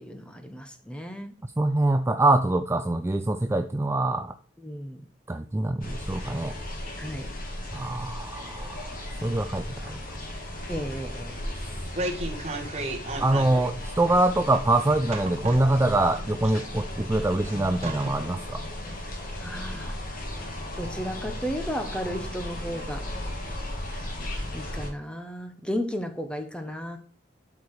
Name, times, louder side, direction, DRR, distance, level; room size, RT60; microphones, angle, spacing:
voice 1, 0.0-1.4 4.6-5.1 7.0-7.3 10.7-11.3 19.4-20.0 20.8-23.1 24.5-27.0, equal, 5° left, 7 dB, 1.1 m, -34 dB
voice 2, 1.4-4.3 5.3-6.6 7.7-10.0 13.2-18.6, right 2 dB, 15° right, 8 dB, 0.4 m, -24 dB
sound 1, 5.8-24.9, left 1 dB, 50° left, 2.0 m, -36 dB
sound 2, 11.9-13.7 14.0-14.1 15.1-16.0 16.4-17.1 17.4-17.5 17.8-18.3 18.7-18.8, right 2 dB, 35° right, 1.6 m, -34 dB
12.0 x 4.8 x 4.9 m, 0.42 s
head